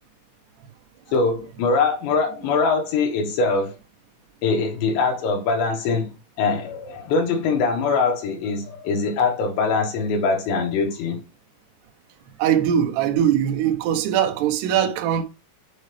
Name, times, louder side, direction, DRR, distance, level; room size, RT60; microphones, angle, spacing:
voice 1, 1.1-3.8 4.4-6.1 6.4-11.2, left 4 dB, 70° left, 3.5 m, -22 dB
voice 2, 12.4-15.2, right 9 dB, 75° right, 2.6 m, -21 dB
7.8 x 3.9 x 3.4 m
omnidirectional pair, 5.8 m